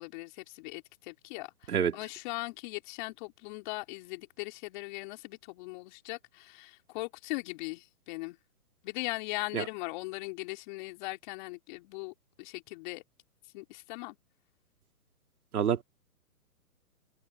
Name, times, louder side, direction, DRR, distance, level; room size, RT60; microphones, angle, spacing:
voice 1, 0.0-8.4 8.8-13.0 13.5-14.2, left 24 dB, 30° left, 3.9 m, -39 dB
voice 2, 1.7-2.0 9.5-9.6 15.5-15.8, right 8 dB, 70° right, 2.4 m, -27 dB
hypercardioid pair, 155°, 45 cm